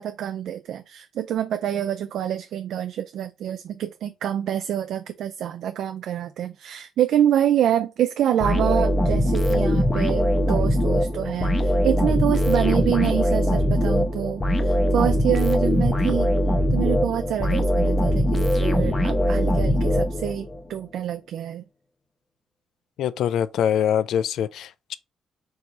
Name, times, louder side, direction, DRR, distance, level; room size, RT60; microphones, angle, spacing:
voice 1, 0.0-16.3 16.7-21.6, right 10 dB, 75° right, 0.4 m, -26 dB
sound 1, 8.4-20.6, equal, 25° left, 0.9 m, -21 dB
voice 2, 23.0-24.9, left 9 dB, 75° left, 0.3 m, -24 dB
4.6 x 2.7 x 3.9 m
cardioid pair, 90°, 0 cm